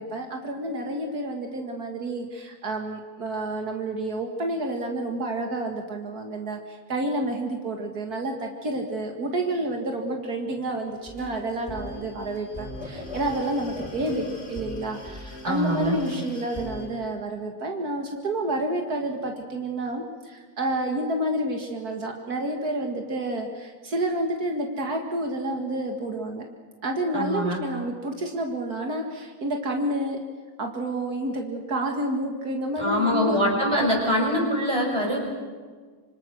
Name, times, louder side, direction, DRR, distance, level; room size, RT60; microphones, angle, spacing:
voice 1, 0.0-26.4 26.8-30.2 30.6-33.4, right 1 dB, 75° right, 2 dB, 2.5 m, -29 dB
sound 1, 10.9-16.9, left 2 dB, 20° left, 5.2 m, -39 dB
voice 2, 15.4-16.0 27.1-27.6 32.8-35.2, equal, 15° right, 0 dB, 5.7 m, -24 dB
26.5 x 25.5 x 6.4 m, 1.5 s
omnidirectional pair, 1.6 m